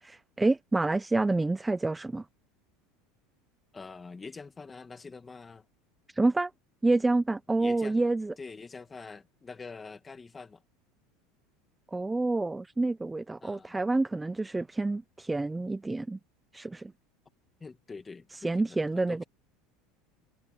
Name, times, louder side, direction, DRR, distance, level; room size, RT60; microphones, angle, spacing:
voice 1, 0.0-2.2 6.1-6.5 6.8-8.3 11.9-16.2 16.5-16.9 18.4-19.2, right 2 dB, 5° right, 0.4 m, -28 dB
voice 2, 3.7-5.6 7.6-8.0 8.4-10.6 13.4-13.7 17.6-19.2, left 4 dB, 15° left, 2.1 m, -45 dB
cardioid pair, 160°, 0 cm